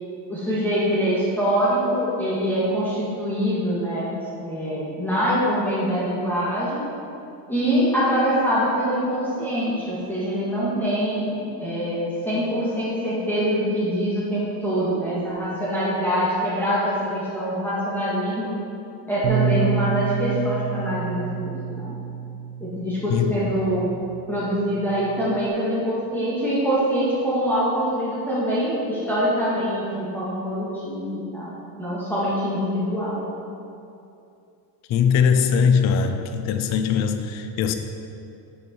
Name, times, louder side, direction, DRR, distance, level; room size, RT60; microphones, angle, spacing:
voice 1, 0.3-6.9 7.5-18.5 19.1-21.9 22.6-23.9 24.3-33.2, equal, 5° left, -10 dB, 1.7 m, -24 dB
Bass guitar, 19.2-25.5, right 7 dB, 65° right, 0.7 m, -29 dB
voice 2, 23.1-23.6 34.9-37.7, left 6 dB, 35° left, 7 dB, 0.4 m, -21 dB
8.6 x 6.6 x 4.4 m, 2.6 s
cardioid pair, 165°, 50 cm